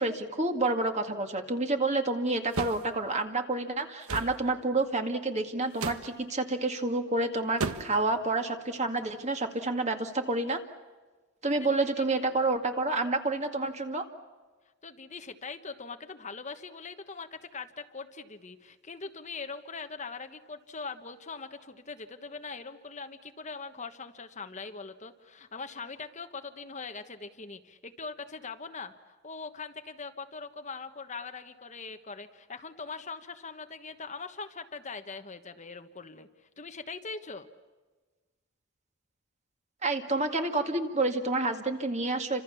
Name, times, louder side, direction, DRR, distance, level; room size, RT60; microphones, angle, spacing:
voice 1, 0.0-10.6 11.4-14.0 39.8-42.4, right 2 dB, 30° right, 5 dB, 2.1 m, -29 dB
sound 1, 2.5-2.8 4.1-4.4 5.7-6.1 7.6-8.0, right 3 dB, 75° right, 1.3 m, -33 dB
voice 2, 14.8-36.3 36.6-37.5, left 4 dB, 30° left, 7 dB, 1.2 m, -42 dB
29.5 x 26.0 x 7.1 m, 1.3 s
head